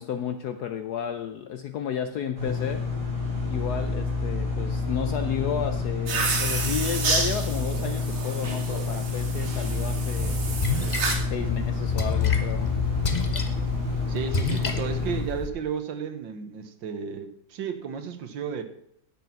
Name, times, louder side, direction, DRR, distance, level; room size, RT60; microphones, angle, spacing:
voice 1, 0.0-2.9 3.5-10.5 11.2-12.7, left 8 dB, 70° left, 9 dB, 0.9 m, -32 dB
sound 1, 2.4-15.2, left 3 dB, 45° right, 4.4 m, -29 dB
sound 2, 6.1-11.1, right 4 dB, 85° right, 2.8 m, -30 dB
Splash splatter, 10.2-15.5, left 5 dB, 40° left, 0.6 m, -29 dB
voice 2, 14.1-18.6, right 7 dB, 65° right, 9 dB, 1.7 m, -33 dB
9.9 x 7.6 x 5.8 m, 0.74 s
omnidirectional pair, 2.3 m